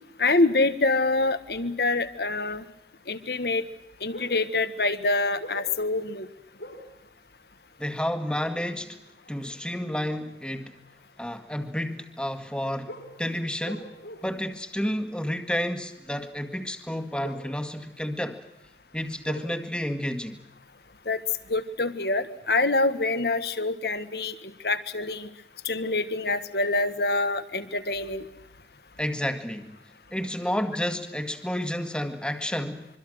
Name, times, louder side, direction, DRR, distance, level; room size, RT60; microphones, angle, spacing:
voice 1, 0.2-2.6 3.1-3.6 4.0-6.3 21.0-21.2 21.5-24.3 24.6-25.3 25.6-28.2, left 2 dB, 65° left, 11 dB, 1.6 m, -26 dB
sound 1, 4.1-4.5 5.1-5.8 6.6-7.0 8.1-8.2 8.7-8.9 10.7-10.8 12.8-14.5 14.8-14.9 17.1-18.5 18.8-21.1 21.3-21.6, equal, 85° left, 7.1 m, -43 dB
voice 2, 7.8-9.0 9.3-10.7 11.2-13.9 14.2-18.4 18.9-20.4 29.0-29.8 30.1-32.9, equal, 5° left, 7 dB, 1.8 m, -30 dB
25.5 x 24.0 x 6.5 m, 0.92 s
head